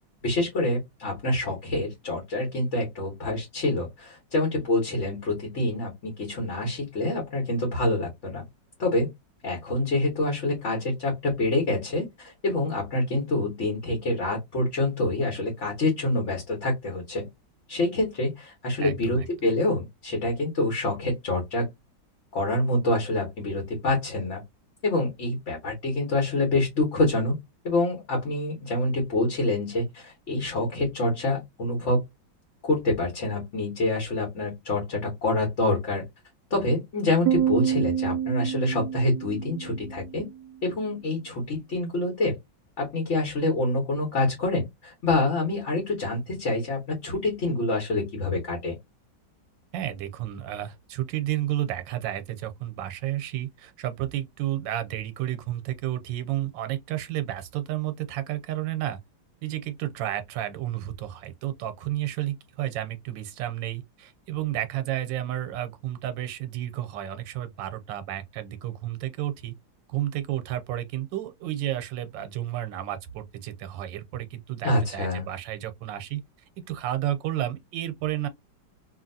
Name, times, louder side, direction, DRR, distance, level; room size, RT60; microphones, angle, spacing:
voice 1, 0.2-8.4 8.8-9.1 9.4-17.3 17.7-21.7 22.3-24.4 24.8-27.4 27.6-32.0 32.6-36.0 36.5-40.3 40.6-42.4 42.8-48.7 74.6-75.3, left 2 dB, 45° left, 1.3 m, -26 dB
voice 2, 18.8-19.3 49.7-59.0 59.4-69.5 69.9-76.2 76.7-78.3, right 13 dB, 90° right, 1.3 m, -31 dB
Piano, 37.3-40.7, right 10 dB, 70° right, 1.0 m, -28 dB
2.8 x 2.8 x 2.6 m
omnidirectional pair, 2.0 m